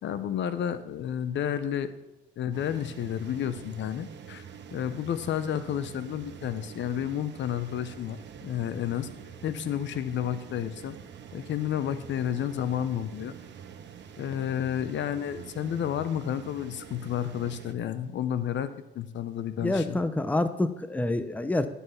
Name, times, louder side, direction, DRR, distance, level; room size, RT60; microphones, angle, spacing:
voice 1, 0.0-1.9 2.4-4.4 4.7-9.1 9.4-11.0 11.3-13.3 14.2-20.0, left 9 dB, 70° left, 12 dB, 0.7 m, -31 dB
sound 1, 2.5-17.7, right 8 dB, 65° right, 1.0 m, -46 dB
voice 2, 19.6-21.7, left 2 dB, 10° left, 11 dB, 0.7 m, -27 dB
11.5 x 5.6 x 5.7 m, 0.99 s
cardioid pair, 90°, 20 cm